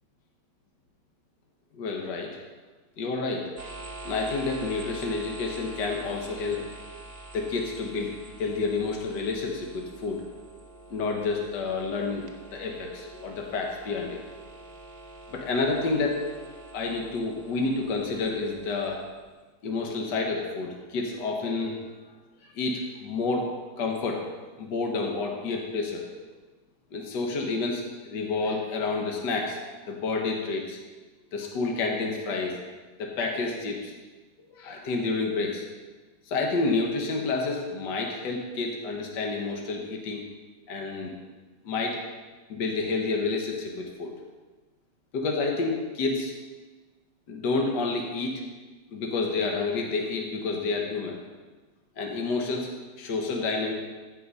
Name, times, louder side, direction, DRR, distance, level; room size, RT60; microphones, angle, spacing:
voice 1, 1.7-2.4 3.0-3.5 4.0-6.6 7.3-10.2 10.9-12.2 12.5-14.2 15.3-16.2 16.7-19.0 19.6-21.9 22.4-23.5 23.8-24.3 24.6-26.1 26.9-29.6 29.9-30.8 31.3-32.5 33.0-33.9 34.5-35.6 36.3-40.2 40.7-41.1 41.7-42.0 42.5-44.1 45.1-46.3 47.3-48.4 48.9-51.2 52.0-52.7 53.0-53.7, left 3 dB, 70° left, 1 dB, 1.8 m, -29 dB
sound 1, 3.6-19.3, right 2 dB, 35° right, 0.7 m, -45 dB
15.0 x 5.4 x 5.5 m, 1.3 s
omnidirectional pair, 2.0 m